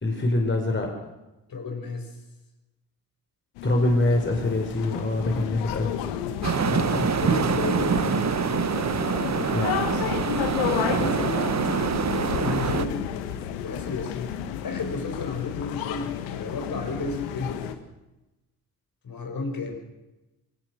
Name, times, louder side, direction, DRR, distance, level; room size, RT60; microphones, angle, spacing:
voice 1, 0.0-0.9 3.6-5.9 9.5-9.8, left 2 dB, 25° left, 2 dB, 4.7 m, -24 dB
voice 2, 1.5-2.1 6.6-8.1 10.6-13.1 13.6-17.7 19.0-19.7, left 3 dB, 50° left, 3 dB, 6.7 m, -33 dB
sound 1, 3.6-17.7, left 10 dB, 75° left, 1.7 m, -32 dB
sound 2, 6.4-12.9, right 7 dB, 35° right, 1.4 m, -25 dB
23.0 x 18.0 x 6.4 m, 1.0 s
hypercardioid pair, 45°, 44 cm